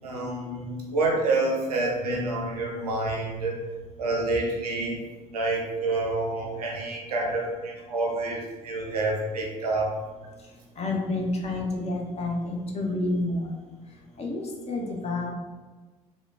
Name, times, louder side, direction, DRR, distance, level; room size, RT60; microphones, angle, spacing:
voice 1, 0.0-3.6 4.0-5.0 5.3-9.9, right 2 dB, 85° right, 0 dB, 0.5 m, -28 dB
voice 2, 10.8-13.6 14.2-15.3, left 2 dB, 35° left, 0 dB, 0.6 m, -29 dB
2.9 x 2.2 x 2.4 m, 1.3 s
hypercardioid pair, 55°, 19 cm